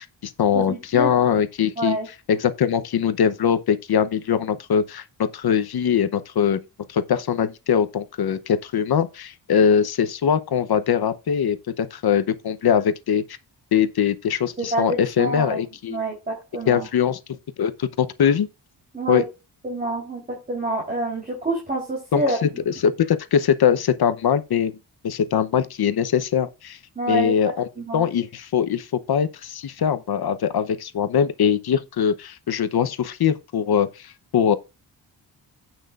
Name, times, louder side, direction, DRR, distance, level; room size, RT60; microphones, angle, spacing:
voice 1, 0.0-2.0 2.3-6.6 6.9-13.2 13.7-16.0 16.7-18.5 19.1-19.2 22.1-24.7 25.0-26.8 27.1-34.6, left 8 dB, 60° left, 0.8 m, -22 dB
voice 2, 0.5-1.1 1.8-2.1 14.6-15.6 15.9-16.9 18.9-19.2 19.6-22.6 27.0-27.3 27.8-28.1, right 2 dB, 20° right, 3.6 m, -27 dB
16.0 x 6.1 x 2.4 m
wide cardioid pair, 165°, 41 cm